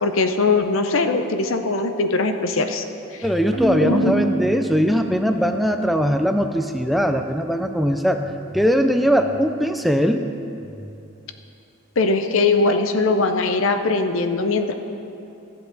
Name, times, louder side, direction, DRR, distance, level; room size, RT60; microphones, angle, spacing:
voice 1, 0.0-2.8 3.1-3.3 3.8-4.2 12.0-14.7, left 3 dB, 70° left, 7 dB, 0.7 m, -21 dB
voice 2, 3.2-8.3 8.5-10.3, equal, ahead, 6 dB, 0.4 m, -20 dB
Keyboard (musical), 3.5-5.3, right 2 dB, 50° right, 2.0 m, -26 dB
14.5 x 7.7 x 4.0 m, 2.7 s
head